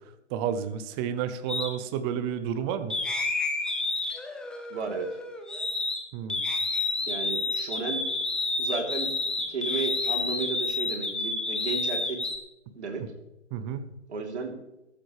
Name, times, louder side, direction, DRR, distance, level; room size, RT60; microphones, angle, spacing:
voice 1, 0.3-2.9 6.1-6.4 13.5-13.9, right 8 dB, 20° right, 11 dB, 0.9 m, -31 dB
sound 1, 1.5-1.7 2.9-6.0 6.3-12.4, left 3 dB, ahead, 0.7 m, -30 dB
voice 2, 4.7-5.2 7.0-8.0 8.6-9.1 9.5-12.3 12.7-13.1 14.1-14.6, right 4 dB, 65° right, 2 dB, 3.7 m, -33 dB
14.0 x 13.0 x 3.4 m, 0.91 s
figure-of-eight pair, 135°, 37 cm